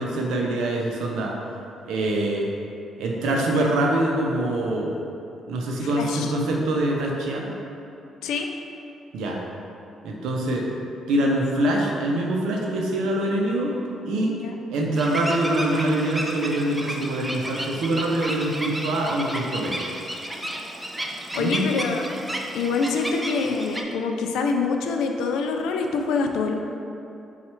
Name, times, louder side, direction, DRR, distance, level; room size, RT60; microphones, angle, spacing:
voice 1, 0.0-1.3 1.9-2.5 3.0-4.9 5.5-7.5 9.1-9.4 10.0-10.8 11.1-13.8 14.0-14.4 14.7-19.8 21.3-21.7, right 1 dB, 85° right, -1 dB, 0.6 m, -24 dB
voice 2, 5.9-6.3 8.2-8.5 14.3-14.5 21.4-22.1 22.5-26.5, left 4 dB, 90° left, 4 dB, 0.3 m, -25 dB
sound 1, 15.0-23.8, right 1 dB, 10° right, 0.4 m, -33 dB
4.3 x 2.4 x 4.3 m, 2.8 s
cardioid pair, 90°, 0 cm